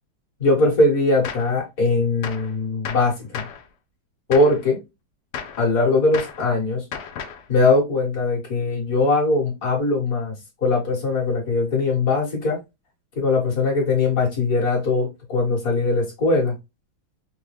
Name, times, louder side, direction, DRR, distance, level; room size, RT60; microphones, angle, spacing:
voice 1, 0.4-3.5 4.3-4.8 5.6-6.9 7.5-10.3 10.6-12.6 13.2-16.5, left 3 dB, 45° left, 2.0 m, -20 dB
Gunshot gunfire, 1.2-1.6 2.2-2.5 2.8-3.6 4.3-4.6 5.3-5.6 6.1-6.4 6.9-7.5, left 7 dB, 70° left, 1.1 m, -34 dB
5.2 x 2.2 x 3.2 m
omnidirectional pair, 2.2 m